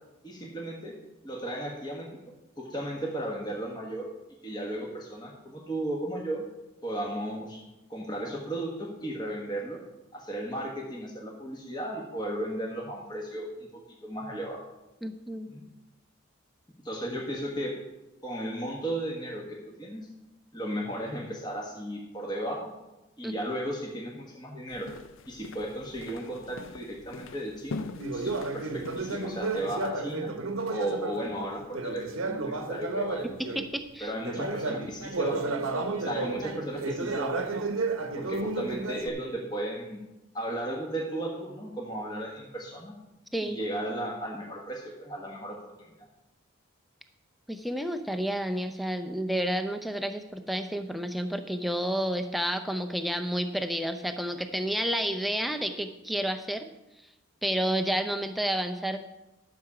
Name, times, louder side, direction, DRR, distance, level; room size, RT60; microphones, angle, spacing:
voice 1, 0.2-1.0 1.2-2.1 2.6-4.1 4.4-6.4 6.8-7.6 7.9-9.8 10.1-14.6 15.5-15.6 16.8-17.7 18.2-20.1 20.5-22.7 23.2-24.9 25.3-30.3 30.7-33.6 34.0-35.5 36.0-37.8 38.2-40.0 40.3-42.9 43.4-46.1, right 1 dB, 20° left, -1 dB, 1.3 m, -35 dB
voice 2, 15.0-15.5 23.2-23.3 33.4-34.1 43.3-43.6 47.5-56.7 57.4-59.0, equal, ahead, 6 dB, 0.5 m, -30 dB
sound 1, 24.7-29.9, left 3 dB, 65° left, 0.5 m, -43 dB
Conversation, 28.0-33.7 34.2-39.1, right 3 dB, 75° right, 0.9 m, -32 dB
12.5 x 7.0 x 4.8 m, 0.99 s
head